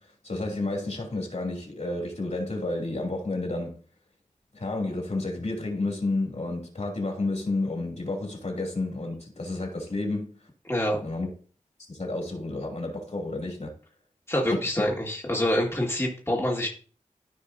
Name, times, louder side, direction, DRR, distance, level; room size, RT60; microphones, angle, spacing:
voice 1, 0.2-3.8 4.5-10.3 11.0-11.3 11.9-13.7 14.5-14.6, left 2 dB, 55° left, 2.8 m, -31 dB
voice 2, 10.7-11.0 14.3-16.7, left 1 dB, 20° left, 1.9 m, -26 dB
14.0 x 4.7 x 2.7 m
wide cardioid pair, 55°, 13 cm